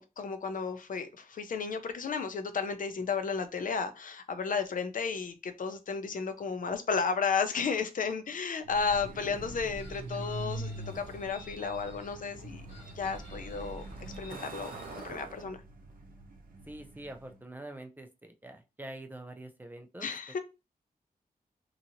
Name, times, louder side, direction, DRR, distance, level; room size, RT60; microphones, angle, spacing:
voice 1, 0.0-12.6 13.0-13.8 14.2-15.6 20.0-20.4, left 5 dB, 60° left, 0.5 m, -33 dB
Truck, 8.6-17.4, right 2 dB, 65° right, 0.6 m, -43 dB
Chicken rooster, 9.8-12.2 12.7-15.1, left 1 dB, 40° left, 1.8 m, -54 dB
voice 2, 16.7-20.1, right 1 dB, 10° right, 0.4 m, -45 dB
2.9 x 2.7 x 2.6 m
wide cardioid pair, 120°, 15 cm